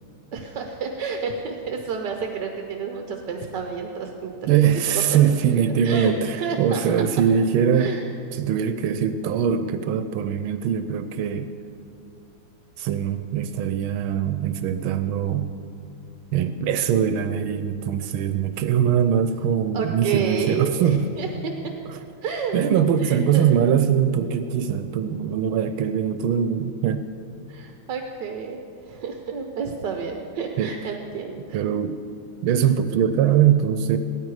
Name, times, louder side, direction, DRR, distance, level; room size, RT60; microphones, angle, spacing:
voice 1, 0.3-4.6 5.1-5.2 5.8-6.1 6.4-6.8 7.7-8.0 19.7-21.5 22.2-22.5 23.0-23.5 27.5-28.6 28.9-31.6, right 6 dB, 65° right, 3 dB, 1.4 m, -30 dB
voice 2, 4.4-7.9 8.3-11.5 12.8-15.5 16.3-21.1 21.9-22.0 22.5-27.1 30.6-30.7 31.5-32.0 32.4-34.0, right 8 dB, 85° right, 9 dB, 1.4 m, -22 dB
17.0 x 13.5 x 4.8 m, 2.8 s
omnidirectional pair, 2.2 m